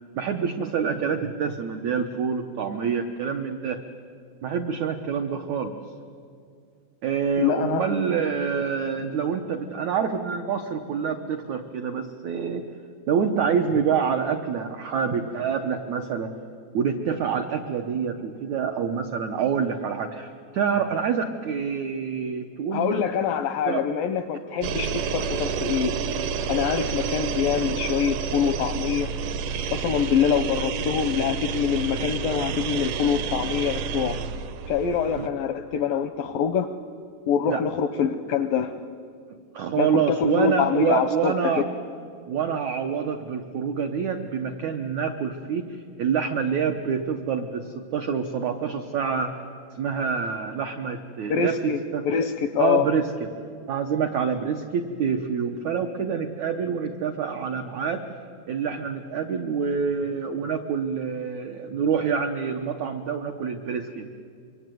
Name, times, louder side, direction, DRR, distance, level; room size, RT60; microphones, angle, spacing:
voice 1, 0.2-3.8 4.4-5.8 7.0-12.6 13.1-16.3 16.7-23.0 23.7-23.8 35.2-35.3 37.5-37.6 39.5-41.6 42.3-49.4 49.7-52.0 52.6-53.3 53.7-58.0 58.5-64.1, right 6 dB, 85° right, 5 dB, 1.6 m, -27 dB
voice 2, 7.4-7.9 22.7-26.0 26.5-29.1 29.7-34.2 34.7-36.7 37.3-38.7 39.8-41.6 51.3-51.8 52.1-52.9, left 7 dB, 80° left, 9 dB, 2.0 m, -25 dB
sound 1, 24.6-35.3, right 6 dB, 70° right, 2.0 m, -29 dB
26.0 x 23.5 x 9.3 m, 2.3 s
omnidirectional pair, 5.0 m